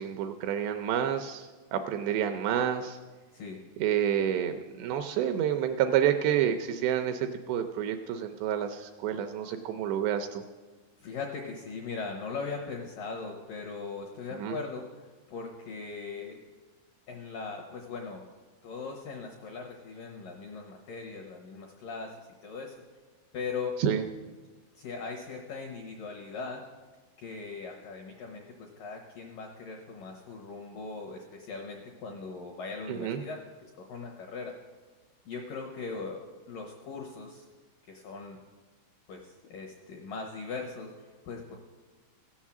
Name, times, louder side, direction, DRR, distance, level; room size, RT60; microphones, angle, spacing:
voice 1, 0.0-3.0 3.8-10.4 14.4-14.6 23.8-24.0 32.9-33.2, right 9 dB, 80° right, 7 dB, 2.6 m, -29 dB
voice 2, 3.3-3.6 11.0-16.4 17.1-18.2 18.6-22.8 23.3-23.8 24.8-26.6 27.2-34.5 35.3-36.2 36.5-37.5 37.9-38.4 39.1-41.6, left 4 dB, 80° left, 1 dB, 2.0 m, -39 dB
16.0 x 7.3 x 7.3 m, 1.3 s
omnidirectional pair, 5.5 m